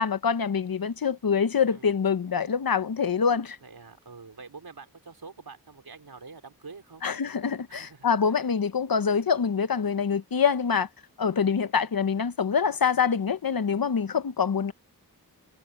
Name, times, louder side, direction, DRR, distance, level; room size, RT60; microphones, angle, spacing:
voice 1, 0.0-3.6 7.0-10.9 11.2-14.7, left 6 dB, 70° left, 1.0 m, -25 dB
voice 2, 3.6-7.0 7.7-8.5 11.3-11.4, right 4 dB, 90° right, 4.5 m, -46 dB
wide cardioid pair, 80°, 37 cm